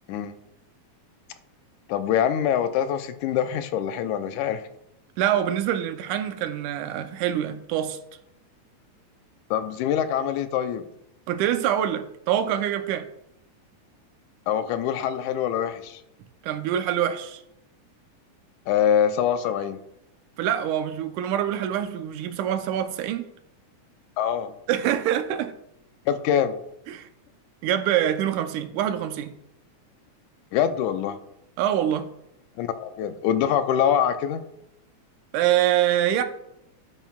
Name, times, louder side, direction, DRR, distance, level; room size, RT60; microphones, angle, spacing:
voice 1, 1.9-4.6 9.5-10.9 14.5-16.0 18.7-19.8 24.2-24.5 26.1-26.6 30.5-31.2 32.6-34.4, left 9 dB, 85° left, 10 dB, 2.0 m, -24 dB
voice 2, 5.2-8.0 11.3-13.1 16.4-17.4 20.4-23.3 24.7-25.5 26.9-27.1 27.6-29.3 31.6-32.1 35.3-36.2, right 11 dB, 85° right, 8 dB, 2.2 m, -25 dB
11.0 x 9.1 x 2.3 m, 0.79 s
omnidirectional pair, 3.5 m